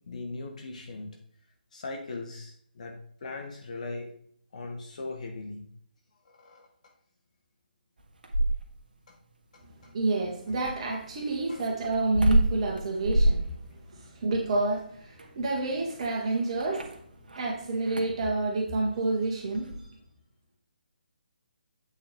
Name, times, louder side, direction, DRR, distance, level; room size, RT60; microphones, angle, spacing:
voice 1, 0.1-1.1 1.7-2.9 3.2-4.1 4.5-5.6 6.4-6.7 9.1-9.2 9.5-9.6 11.5-11.7, left 3 dB, 50° left, 2 dB, 1.2 m, -39 dB
sound 1, 8.0-8.9 10.6-17.5 17.8-18.2 19.5-19.8, right 1 dB, 65° right, 1.3 m, -28 dB
voice 2, 9.9-13.4 13.9-16.9 17.3-19.7, right 2 dB, 40° right, -1 dB, 1.6 m, -29 dB
8.3 x 4.5 x 3.6 m, 0.63 s
figure-of-eight pair, 145°, 5 cm